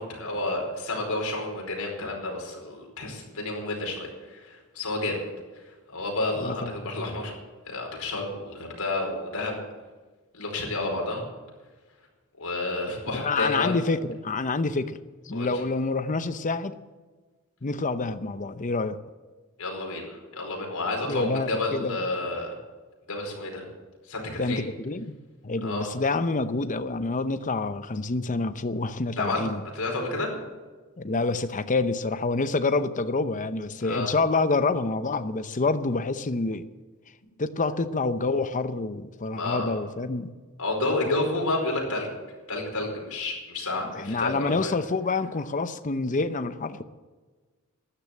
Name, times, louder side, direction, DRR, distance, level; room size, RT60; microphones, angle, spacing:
voice 1, 0.0-5.2 5.9-7.3 7.7-9.6 10.3-11.2 12.4-13.8 15.3-15.5 19.6-22.5 23.1-23.6 24.1-24.6 25.6-25.9 29.2-30.3 33.8-34.1 39.4-39.8 40.6-42.1 42.5-44.7, left 2 dB, 85° left, 0 dB, 4.8 m, -30 dB
voice 2, 13.1-15.0 15.3-16.8 17.6-19.0 21.0-22.0 24.4-25.2 25.4-29.6 31.0-36.6 37.4-40.3 43.9-46.8, left 3 dB, 35° left, 11 dB, 0.8 m, -27 dB
13.0 x 10.5 x 8.4 m, 1.3 s
head